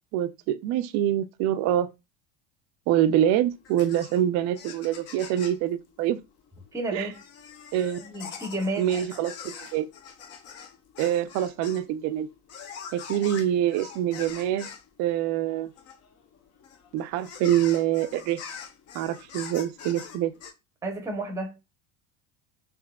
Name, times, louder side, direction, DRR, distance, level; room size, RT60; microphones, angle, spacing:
voice 1, 0.1-1.9 2.9-6.2 6.9-7.1 7.7-8.0 8.8-9.9 11.0-12.3 12.9-14.7 15.0-15.7 16.9-18.4 18.9-20.3, right 11 dB, 50° right, 0.4 m, -25 dB
sound 1, 3.0-20.5, left 6 dB, 40° left, 0.6 m, -44 dB
voice 2, 6.7-7.2 8.0-9.0 20.8-21.6, right 1 dB, 10° right, 0.7 m, -31 dB
3.5 x 2.7 x 2.3 m
supercardioid pair, 110°, 37 cm